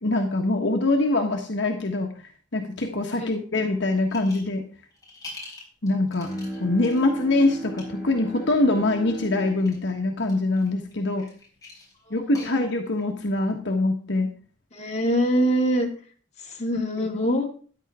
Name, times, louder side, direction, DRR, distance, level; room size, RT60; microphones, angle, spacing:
voice 1, 0.0-2.1 2.5-4.6 5.8-6.3 6.6-11.2 12.1-14.3, left 2 dB, 65° left, 2 dB, 1.3 m, -24 dB
sound 1, 4.1-4.6 4.9-7.0 7.6-7.8 9.1-9.8 10.2-13.0, left 2 dB, 20° left, 5.4 m, -44 dB
Bowed string instrument, 6.2-11.6, right 1 dB, 5° right, 4.7 m, -38 dB
voice 2, 12.1-12.6 14.7-15.9 16.4-17.4, equal, 35° left, -1 dB, 2.4 m, -24 dB
13.5 x 10.5 x 3.6 m, 0.43 s
head